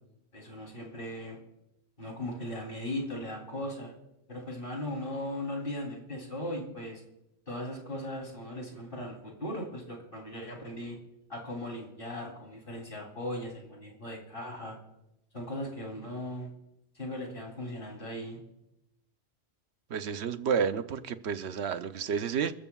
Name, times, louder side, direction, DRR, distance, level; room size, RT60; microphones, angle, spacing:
voice 1, 0.3-1.4 2.0-3.9 4.3-7.0 7.5-11.0 11.3-14.8 15.3-16.5 17.0-18.4, left 1 dB, 55° left, 3.5 m, -38 dB
voice 2, 19.9-22.5, right 7 dB, 80° right, 1.0 m, -30 dB
28.0 x 14.0 x 2.3 m
omnidirectional pair, 1.1 m